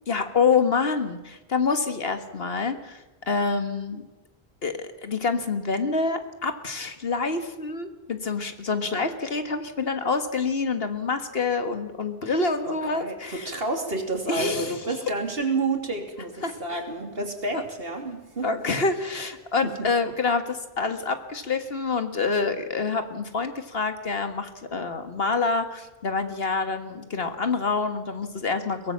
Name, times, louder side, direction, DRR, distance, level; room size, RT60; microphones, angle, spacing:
voice 1, 0.1-3.0 3.3-4.0 4.6-13.5 14.3-14.8 16.4-16.8 17.5-17.6 18.4-28.9, left 4 dB, 65° left, 8 dB, 1.9 m, -27 dB
voice 2, 12.6-18.5 19.6-19.7, right 3 dB, 65° right, 4 dB, 3.2 m, -30 dB
22.5 x 18.0 x 7.3 m, 1.1 s
omnidirectional pair, 1.1 m